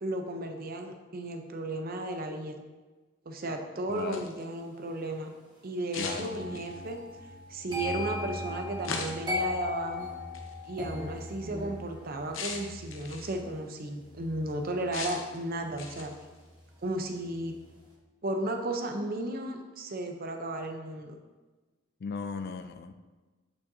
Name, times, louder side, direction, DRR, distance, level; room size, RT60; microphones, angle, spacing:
voice 1, 0.0-2.6 3.3-5.3 5.6-7.0 7.5-10.1 10.7-16.1 16.8-17.6 18.2-21.2, right 1 dB, 45° right, 4 dB, 0.7 m, -34 dB
sound 1, 3.9-4.4 5.9-6.9 8.8-9.4 10.3-10.5 12.3-13.4 14.9-15.4 15.8-16.2, left 4 dB, 70° left, 0.8 m, -38 dB
voice 2, 3.9-4.3 6.0-6.6 22.0-22.9, left 5 dB, 50° left, 9 dB, 0.4 m, -37 dB
sound 2, 6.0-17.0 17.3-17.6, left 2 dB, 20° right, 1.2 m, -39 dB
9.1 x 5.7 x 2.7 m, 1.3 s
head